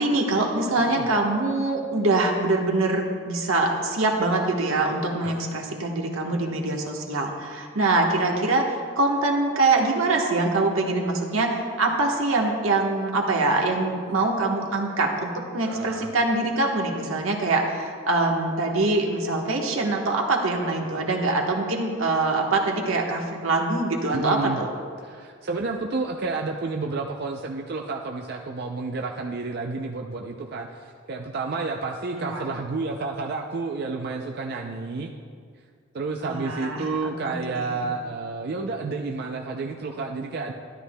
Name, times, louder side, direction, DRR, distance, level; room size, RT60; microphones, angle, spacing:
voice 1, 0.0-24.7 32.1-32.4 36.2-36.8 37.2-37.9, right 2 dB, 80° right, 1 dB, 1.2 m, -24 dB
voice 2, 15.6-16.1 24.1-24.6 25.0-35.1 35.9-40.5, right 3 dB, 50° right, 1 dB, 0.4 m, -30 dB
12.5 x 11.0 x 2.2 m, 2.1 s
head